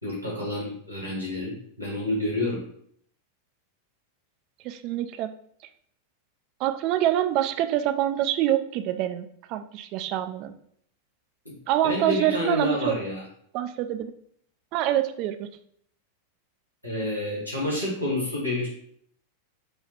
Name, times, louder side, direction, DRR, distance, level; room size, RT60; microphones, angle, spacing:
voice 1, 0.0-2.6 11.4-11.6 11.8-13.2 16.8-18.7, left 1 dB, 90° right, -5 dB, 1.4 m, -29 dB
voice 2, 4.6-5.3 6.6-10.5 11.7-12.9 13.5-14.1 14.7-15.5, right 12 dB, 40° right, 9 dB, 0.3 m, -26 dB
4.8 x 2.3 x 3.1 m, 0.65 s
figure-of-eight pair, 90°, 0 cm